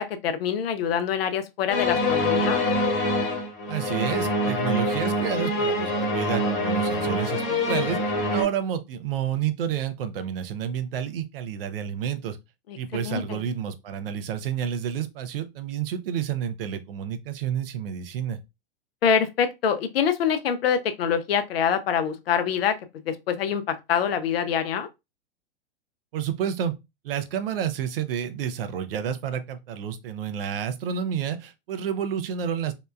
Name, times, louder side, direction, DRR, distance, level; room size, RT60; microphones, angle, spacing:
voice 1, 0.0-2.6 12.9-13.4 19.0-22.8 23.1-24.9, left 7 dB, 75° left, 0.5 m, -25 dB
sound 1, 1.7-8.4, left 1 dB, 50° left, 1.1 m, -25 dB
voice 2, 3.7-12.4 12.8-18.4 26.1-26.7 27.0-32.7, right 8 dB, 70° right, 0.5 m, -30 dB
2.8 x 2.2 x 2.2 m
hypercardioid pair, 110°, 30 cm